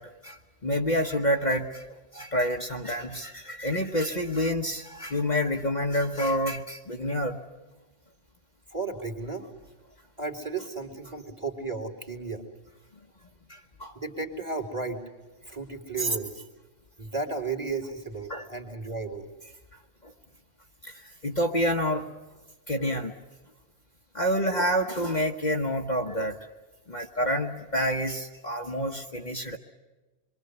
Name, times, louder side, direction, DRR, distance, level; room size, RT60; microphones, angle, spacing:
voice 1, 0.0-7.4 13.5-14.0 16.0-16.2 18.3-18.5 20.0-20.1 20.8-22.1 22.7-23.1 24.1-26.4 26.9-29.6, equal, 40° left, 2 dB, 1.4 m, -28 dB
voice 2, 8.7-9.5 10.2-12.4 13.9-15.0 15.5-16.4 17.0-19.3, right 4 dB, 25° right, 3 dB, 3.0 m, -34 dB
27.0 x 23.5 x 8.1 m, 1.2 s
omnidirectional pair, 1.2 m